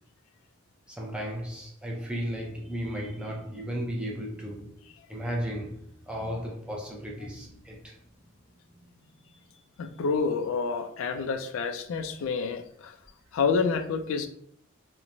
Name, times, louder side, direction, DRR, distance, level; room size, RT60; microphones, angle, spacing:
voice 1, 0.9-4.7 5.1-8.0 8.9-9.1, equal, 5° right, 0.4 m, -35 dB
voice 2, 9.8-12.9 13.3-14.3, left 5 dB, 65° left, 0.3 m, -28 dB
2.9 x 2.0 x 2.5 m
head